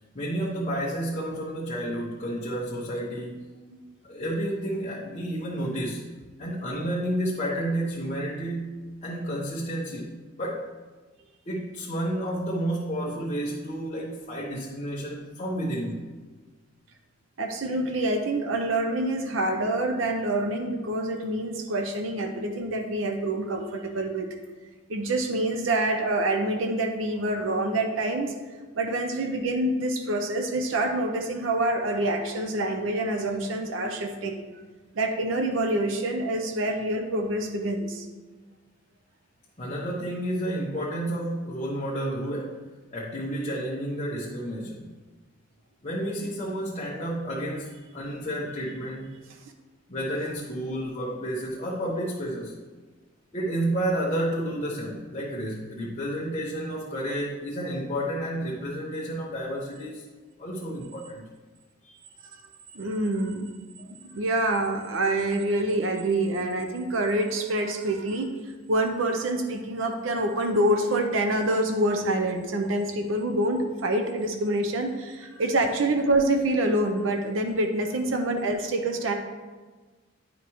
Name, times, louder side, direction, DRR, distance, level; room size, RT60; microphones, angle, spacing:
voice 1, 0.1-3.5 4.0-6.0 6.4-10.1 10.4-10.6 11.5-16.0 39.6-42.6 42.9-44.9 45.8-49.0 49.9-52.5 53.3-60.1 60.4-61.3 61.8-62.0, right 1 dB, 35° left, -5 dB, 0.9 m, -31 dB
voice 2, 17.4-24.4 24.9-28.3 28.7-34.4 34.9-38.0 62.7-63.5 63.9-79.1, right 1 dB, 85° right, 5 dB, 0.6 m, -26 dB
9.7 x 5.1 x 3.0 m, 1.3 s
head